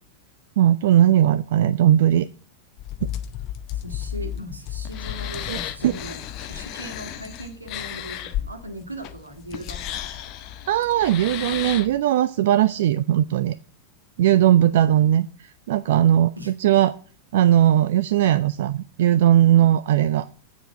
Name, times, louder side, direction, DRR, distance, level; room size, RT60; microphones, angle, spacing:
voice 1, 0.6-2.3 3.0-3.1 5.5-6.0 10.7-13.6 14.2-16.9 17.3-20.3, right 11 dB, 55° right, 16 dB, 0.3 m, -19 dB
sound 1, 2.8-12.0, left 11 dB, 40° left, 0.7 m, -33 dB
voice 2, 3.7-10.1 14.6-14.7 16.4-16.5, right 1 dB, 80° right, 4 dB, 1.8 m, -38 dB
8.8 x 5.1 x 7.1 m, 0.43 s
figure-of-eight pair, 90°, 0 cm